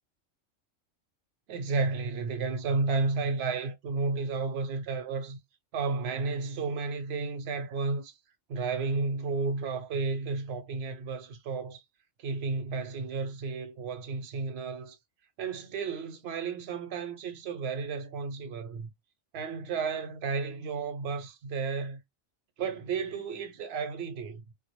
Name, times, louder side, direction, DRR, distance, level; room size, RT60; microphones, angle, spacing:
voice 1, 1.5-5.4 5.7-8.1 8.5-11.8 12.2-15.0 15.4-18.9 19.3-22.0 22.6-24.4, right 4 dB, 65° right, 0.8 m, -32 dB
2.2 x 2.1 x 2.9 m
omnidirectional pair, 1.3 m